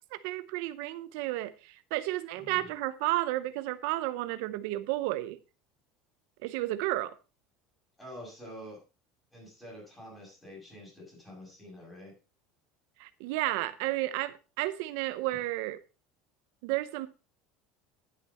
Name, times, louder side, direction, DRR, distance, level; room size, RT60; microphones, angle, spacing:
voice 1, 0.0-5.4 6.4-7.1 13.0-15.8 16.6-17.1, right 17 dB, 70° right, 0.6 m, -32 dB
voice 2, 2.3-2.7 8.0-8.8 9.3-12.1, equal, 10° left, 6.9 m, -47 dB
10.0 x 8.5 x 4.2 m
cardioid pair, 170°, 0 cm